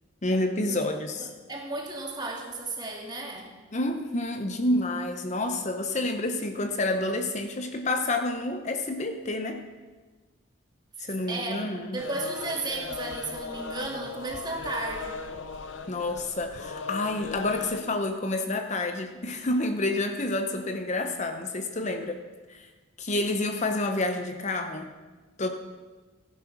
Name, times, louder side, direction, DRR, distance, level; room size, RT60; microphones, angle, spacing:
voice 1, 0.2-1.3 3.7-9.6 11.0-12.0 15.9-22.2 22.5-22.7 23.0-24.9 25.4-25.5, left 2 dB, 40° left, 6 dB, 0.9 m, -29 dB
voice 2, 1.2-3.5 11.3-15.3, right 2 dB, 20° right, 0 dB, 2.3 m, -34 dB
sound 1, 12.0-17.8, left 4 dB, 75° left, 0.8 m, -38 dB
16.0 x 10.5 x 6.0 m, 1.3 s
head